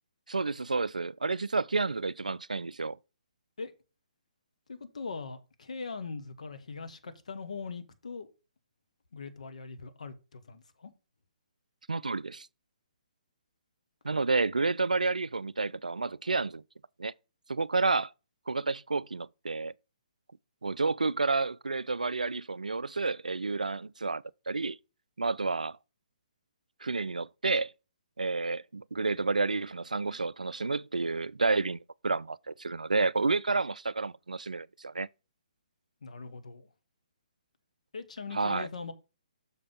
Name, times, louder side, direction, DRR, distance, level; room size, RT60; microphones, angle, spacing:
voice 1, 0.3-3.0 11.9-12.5 14.0-16.6 17.0-17.1 17.5-18.1 18.5-19.7 20.6-24.8 25.2-25.8 26.8-27.7 28.2-35.1 38.3-38.7, right 3 dB, 75° right, 0.3 m, -30 dB
voice 2, 4.7-8.3 9.1-10.9 36.0-36.7 37.9-38.9, left 4 dB, 60° left, 1.2 m, -41 dB
6.5 x 5.0 x 5.4 m
figure-of-eight pair, 130°, 4 cm